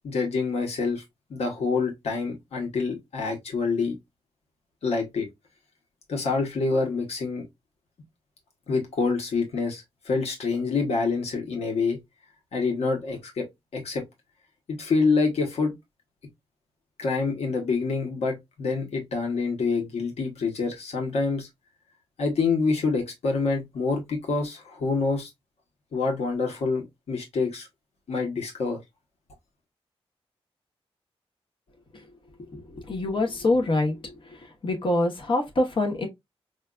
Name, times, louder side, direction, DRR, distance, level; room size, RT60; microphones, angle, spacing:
voice 1, 0.0-1.0 1.3-3.9 4.8-5.3 6.1-7.4 8.7-12.0 12.5-13.5 13.7-14.0 14.7-15.7 17.0-21.5 22.2-25.3 25.9-27.7 28.1-28.8, left 4 dB, 85° left, 1.0 m, -26 dB
voice 2, 32.9-34.2 34.6-36.1, left 2 dB, 55° left, 1.0 m, -25 dB
4.9 x 2.3 x 2.3 m
wide cardioid pair, 95°, 10 cm